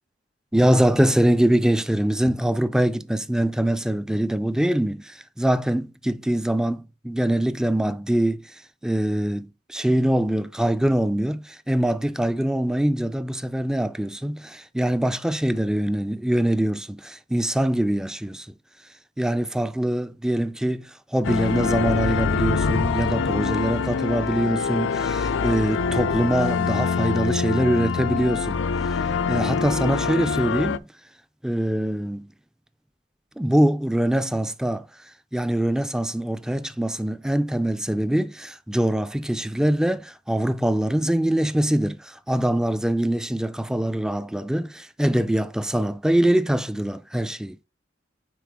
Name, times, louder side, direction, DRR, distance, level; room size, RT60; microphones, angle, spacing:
voice 1, 0.5-8.4 8.8-18.5 19.2-28.6 28.9-29.0 29.3-30.8 31.4-32.3 33.4-34.9 35.3-47.6, right 1 dB, 5° right, 0.3 m, -23 dB
sound 1, 21.2-30.8, left 5 dB, 85° left, 0.4 m, -24 dB
9.2 x 3.9 x 3.5 m
head